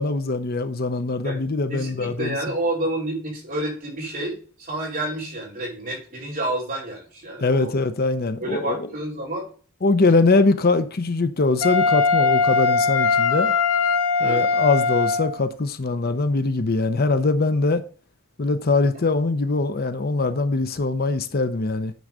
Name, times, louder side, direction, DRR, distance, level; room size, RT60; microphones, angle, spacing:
voice 1, 0.0-2.4 7.4-8.8 9.8-13.5 14.2-17.8 18.4-21.9, left 3 dB, 45° left, 0.7 m, -22 dB
voice 2, 1.7-7.7 8.4-9.5 14.2-14.5, right 1 dB, 40° right, 4.3 m, -29 dB
Wind instrument woodwind instrument, 11.6-15.4, left 4 dB, 85° left, 1.1 m, -20 dB
9.4 x 3.9 x 6.4 m
head